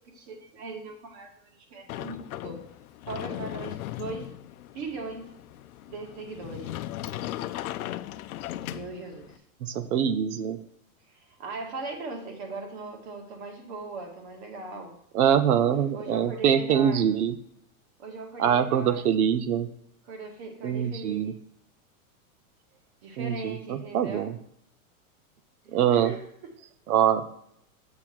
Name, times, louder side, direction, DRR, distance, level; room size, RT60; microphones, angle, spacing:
voice 1, 0.1-2.6 3.1-4.3 4.7-5.3 5.9-6.8 8.7-9.3 11.1-14.9 15.9-17.0 18.0-19.0 20.1-21.4 23.0-24.3 25.9-26.2, right 3 dB, 45° right, 3 dB, 2.2 m, -39 dB
Sliding door, 1.9-9.4, left 13 dB, 75° left, 0.6 m, -37 dB
voice 2, 9.6-10.6 15.1-17.4 18.4-19.7 20.6-21.3 23.2-24.3 25.7-26.1 26.9-27.2, right 9 dB, 85° right, 13 dB, 0.8 m, -24 dB
7.7 x 6.1 x 4.5 m, 0.71 s
supercardioid pair, 155°, 43 cm